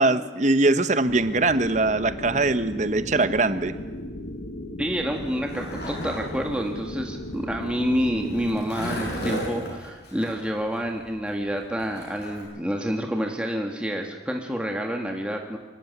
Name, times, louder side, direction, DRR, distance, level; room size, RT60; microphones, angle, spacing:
voice 1, 0.0-3.7, right 2 dB, 40° right, 11 dB, 1.0 m, -22 dB
sound 1, 1.1-8.7, left 1 dB, 85° left, 1.7 m, -36 dB
voice 2, 4.8-15.6, equal, 5° right, 2 dB, 1.7 m, -28 dB
Skateboard, 5.0-12.4, equal, 65° left, 8.0 m, -36 dB
24.5 x 14.0 x 9.4 m, 1.3 s
head